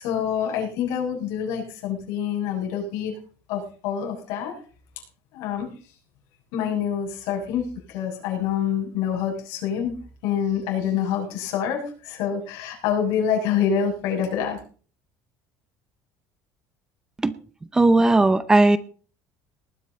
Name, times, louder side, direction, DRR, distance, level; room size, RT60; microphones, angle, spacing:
voice 1, 0.0-3.2 3.5-4.6 5.3-5.7 6.5-10.0 10.2-14.6, left 8 dB, 80° left, -1 dB, 6.6 m, -26 dB
voice 2, 17.7-18.8, right 2 dB, 10° right, 14 dB, 0.6 m, -17 dB
19.5 x 9.7 x 4.0 m, 0.40 s
cardioid pair, 175°, 7 cm